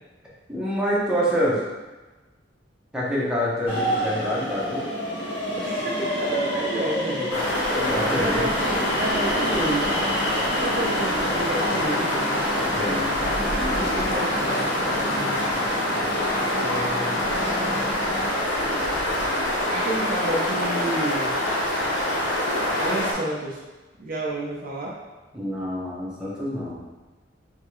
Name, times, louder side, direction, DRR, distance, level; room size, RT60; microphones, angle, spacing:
voice 1, 0.5-1.7 2.9-4.8 7.7-8.5 12.8-13.0 25.3-26.8, equal, 5° right, -8 dB, 1.0 m, -26 dB
sound 1, 3.7-18.3, equal, 30° left, 1.4 m, -30 dB
voice 2, 5.6-7.5 8.1-10.0 10.5-12.1 13.8-14.6 16.5-17.3 19.7-21.3 22.8-23.6 24.0-25.0, right 1 dB, 50° right, -3 dB, 0.6 m, -30 dB
sound 2, 7.3-23.1, left 1 dB, 70° left, 1.0 m, -25 dB
3.6 x 3.6 x 3.2 m, 1.2 s
head